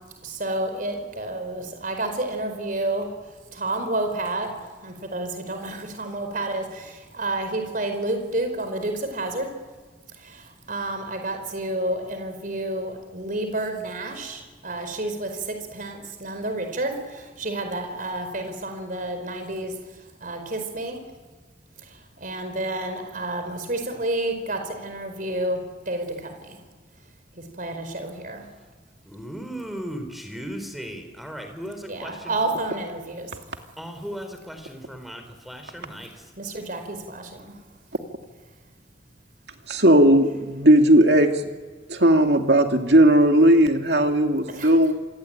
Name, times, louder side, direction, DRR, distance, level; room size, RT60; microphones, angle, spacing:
voice 1, 0.2-3.1 3.5-4.5 4.8-9.5 10.7-15.3 15.7-17.0 17.4-19.7 20.2-21.0 22.2-25.6 25.9-26.6 27.6-28.5 31.9-33.3 36.4-37.6 44.5-44.7, right 2 dB, 50° right, 6 dB, 4.8 m, -30 dB
voice 2, 29.1-32.5 33.8-36.1, equal, ahead, 6 dB, 4.3 m, -36 dB
voice 3, 39.7-41.3 41.9-44.9, right 1 dB, 65° right, 4 dB, 2.6 m, -17 dB
28.0 x 22.5 x 9.0 m, 1.4 s
head